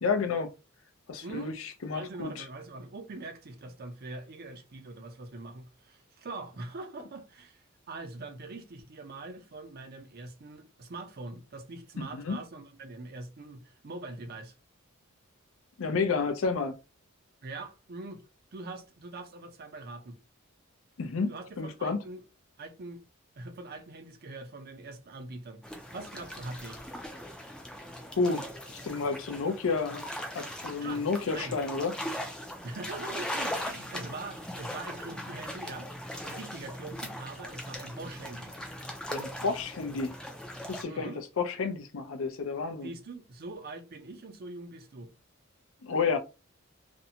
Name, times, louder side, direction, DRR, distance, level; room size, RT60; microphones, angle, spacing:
voice 1, 0.0-0.5 1.1-2.5 12.0-12.4 15.8-16.8 21.0-21.3 21.6-22.0 28.2-28.4 28.8-30.0 30.3-31.9 39.1-40.1 40.7-42.9 45.8-46.2, left 4 dB, 70° left, 0.5 m, -30 dB
voice 2, 1.2-1.6 1.9-14.5 17.4-18.2 18.5-20.2 21.3-22.2 22.6-23.0 23.4-26.8 30.8-31.1 31.3-31.6 32.6-35.9 36.2-38.5 40.8-41.2 42.8-45.1, right 2 dB, 45° right, 0.5 m, -43 dB
sound 1, 25.6-40.8, equal, 5° left, 0.4 m, -39 dB
2.6 x 2.1 x 2.7 m
head